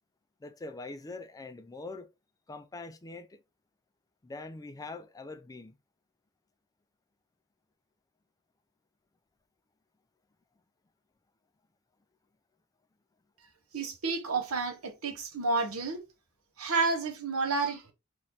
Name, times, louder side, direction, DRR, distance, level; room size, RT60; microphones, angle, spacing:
voice 1, 0.4-2.1 2.5-3.4 4.2-5.8, left 3 dB, 15° left, 0.4 m, -43 dB
voice 2, 13.7-16.0 16.6-17.8, right 3 dB, 70° right, 0.9 m, -30 dB
3.0 x 2.7 x 3.4 m
head